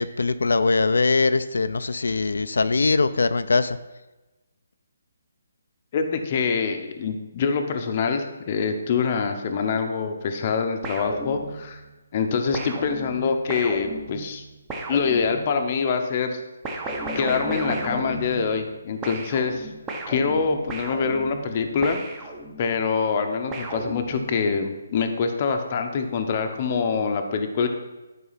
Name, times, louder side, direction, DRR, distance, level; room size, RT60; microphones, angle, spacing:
voice 1, 0.0-3.8, left 3 dB, 90° left, 11 dB, 0.5 m, -22 dB
voice 2, 5.9-11.8 12.1-14.4 14.9-16.4 17.1-19.7 20.1-22.0 22.6-27.7, left 5 dB, 25° left, 6 dB, 0.7 m, -25 dB
sound 1, 10.8-11.8 12.5-15.7 16.6-18.8 19.0-22.8 23.5-24.5, right 1 dB, 10° right, 0.7 m, -34 dB
11.5 x 4.8 x 5.7 m, 1.1 s
hypercardioid pair, 175°, 0 cm